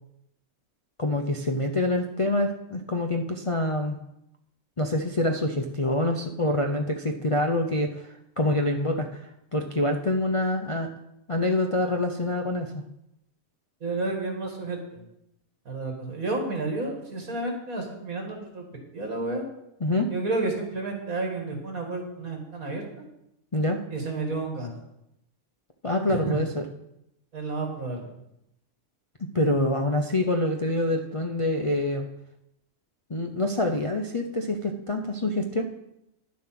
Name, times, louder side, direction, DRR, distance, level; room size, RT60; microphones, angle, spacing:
voice 1, 1.0-4.0 4.8-10.9 11.3-12.8 19.8-20.1 23.5-23.8 25.8-26.6 29.3-32.1 33.1-35.6, left 1 dB, 35° left, 2 dB, 0.5 m, -26 dB
voice 2, 13.8-15.0 15.7-18.6 18.9-19.4 20.1-23.0 23.9-24.7 26.1-26.4 27.3-28.1, right 3 dB, 80° right, 2 dB, 2.8 m, -31 dB
11.0 x 7.3 x 5.9 m, 0.83 s
omnidirectional pair, 1.5 m